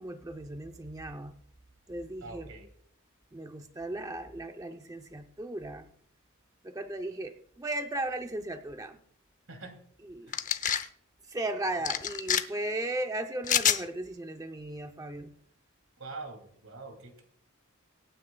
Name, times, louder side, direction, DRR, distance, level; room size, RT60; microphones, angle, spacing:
voice 1, 0.0-1.3 1.9-2.5 3.3-5.9 6.6-9.0 10.1-10.3 11.3-15.3, right 1 dB, 15° right, 5 dB, 0.6 m, -36 dB
voice 2, 2.2-2.7 9.5-9.8 10.3-10.4 16.0-17.2, right 3 dB, 75° right, 5 dB, 2.8 m, -44 dB
sound 1, 10.3-10.9 11.9-12.4 13.4-13.8, left 9 dB, 35° left, 0.7 m, -26 dB
25.0 x 9.5 x 2.3 m, 0.64 s
head